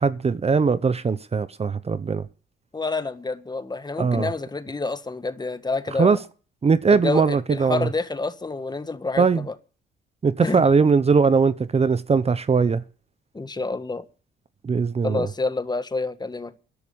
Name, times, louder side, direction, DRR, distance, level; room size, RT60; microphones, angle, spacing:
voice 1, 0.0-2.2 4.0-4.3 6.0-6.2 6.6-7.9 9.2-9.4 10.2-12.8 14.6-15.3, right 5 dB, 30° right, 0.9 m, -20 dB
voice 2, 2.7-6.2 6.9-9.5 10.4-10.6 13.3-14.0 15.0-16.6, left 3 dB, 20° left, 1.6 m, -28 dB
14.0 x 11.0 x 7.0 m
cardioid pair, 90°, 20 cm